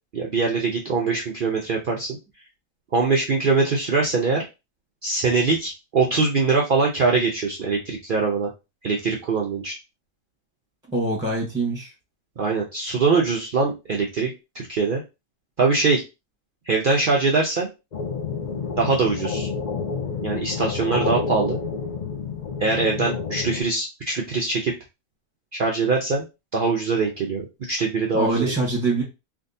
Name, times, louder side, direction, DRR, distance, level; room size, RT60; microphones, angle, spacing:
voice 1, 0.1-2.2 2.9-4.4 5.0-8.5 8.8-9.7 12.4-15.0 15.6-16.0 16.7-17.7 18.8-19.5 20.2-21.6 22.6-24.7 25.5-26.2 26.5-28.5, right 4 dB, 85° right, -1 dB, 0.4 m, -22 dB
voice 2, 10.9-11.9 28.1-29.0, right 2 dB, 5° right, -2 dB, 0.9 m, -24 dB
sound 1, 17.9-23.6, left 5 dB, 80° left, 0.4 m, -29 dB
3.5 x 2.6 x 2.6 m, 0.26 s
omnidirectional pair, 1.7 m